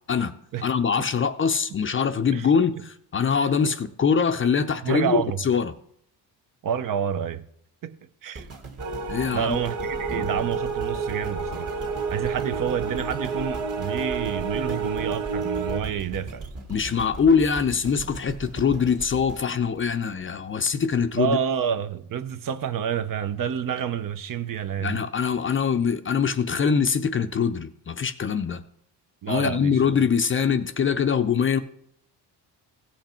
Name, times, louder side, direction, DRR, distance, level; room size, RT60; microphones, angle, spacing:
voice 1, 0.6-5.7 9.1-9.6 10.1-10.4 16.7-21.4 24.8-28.6 29.3-31.6, left 6 dB, 30° left, 0.5 m, -23 dB
voice 2, 3.4-3.7 4.8-5.4 6.6-7.5 7.8-8.0 8.2-8.5 9.3-11.7 12.1-16.5 21.1-25.0 29.2-29.8, right 8 dB, 50° right, 0.8 m, -29 dB
sound 1, 8.4-20.6 21.1-21.2, right 3 dB, 35° right, 1.7 m, -39 dB
sound 2, 8.8-15.8, right 5 dB, 75° right, 1.5 m, -30 dB
16.5 x 5.9 x 4.3 m
cardioid pair, 105°, 42 cm